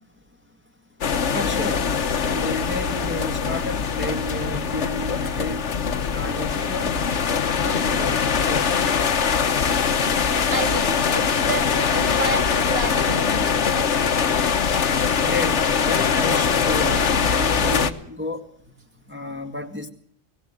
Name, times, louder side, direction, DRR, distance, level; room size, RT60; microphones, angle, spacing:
sound 1, 1.0-17.9, left 6 dB, 70° left, 1.4 m, -22 dB
voice 1, 1.3-2.0 2.2-5.6 6.1-7.0 7.6-8.9 15.2-18.4 19.1-19.9, left 2 dB, 10° right, 4 dB, 1.9 m, -31 dB
voice 2, 10.5-13.7, right 3 dB, 55° right, 8 dB, 2.2 m, -30 dB
24.5 x 17.5 x 7.8 m, 0.67 s
omnidirectional pair, 1.3 m